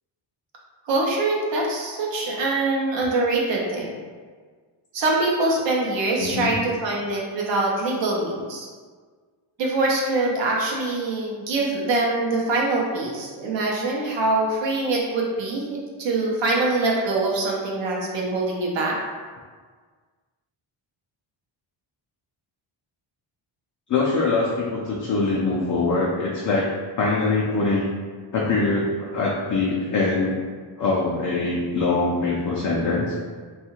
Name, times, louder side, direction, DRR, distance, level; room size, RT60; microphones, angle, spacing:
voice 1, 0.8-3.9 4.9-8.7 9.6-18.9, right 2 dB, 65° right, -2 dB, 0.7 m, -24 dB
voice 2, 6.2-6.6 23.9-26.7 27.0-27.8 28.3-30.4 30.8-33.1, left 3 dB, 40° left, -5 dB, 0.4 m, -23 dB
2.7 x 2.4 x 2.8 m, 1.5 s
wide cardioid pair, 135°, 48 cm